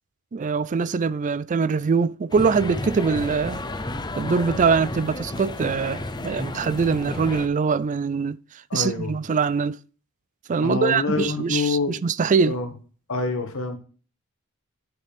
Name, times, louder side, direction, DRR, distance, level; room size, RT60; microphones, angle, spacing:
voice 1, 0.3-3.6 4.2-8.4 8.7-9.8 10.5-12.6, right 5 dB, 35° right, 0.4 m, -23 dB
sound 1, 2.3-7.5, left 2 dB, 20° left, 0.7 m, -32 dB
voice 2, 8.7-9.1 10.6-11.9 12.4-12.7 13.1-13.8, left 3 dB, 60° left, 1.7 m, -26 dB
9.9 x 7.6 x 3.5 m
head